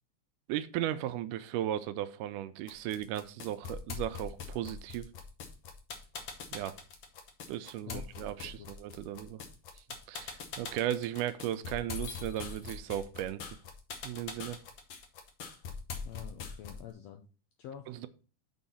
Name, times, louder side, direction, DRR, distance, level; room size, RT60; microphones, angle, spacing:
voice 1, 0.5-5.1 6.5-6.7 7.5-9.4 10.1-13.4 14.0-14.6 17.9-18.1, right 12 dB, 85° right, 13 dB, 2.1 m, -36 dB
sound 1, 2.7-16.9, left 5 dB, 60° left, 1.6 m, -42 dB
voice 2, 8.4-8.8 16.0-17.2 17.6-17.9, left 10 dB, 80° left, 6 dB, 1.5 m, -47 dB
6.2 x 4.3 x 5.5 m, 0.36 s
omnidirectional pair, 3.6 m